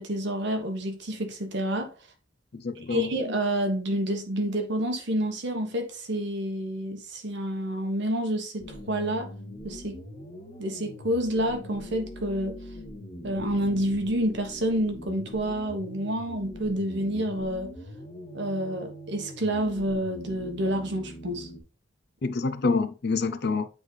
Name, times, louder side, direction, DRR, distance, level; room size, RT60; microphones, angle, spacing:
voice 1, 0.0-1.9 2.8-9.3 9.6-10.0 10.6-12.6 13.2-17.7 18.3-21.5, right 1 dB, 65° right, 1.2 m, -29 dB
voice 2, 2.5-3.1 22.2-23.7, left 4 dB, 60° left, 0.6 m, -27 dB
sound 1, 8.6-21.6, equal, 35° left, 1.2 m, -42 dB
8.2 x 3.5 x 3.3 m
head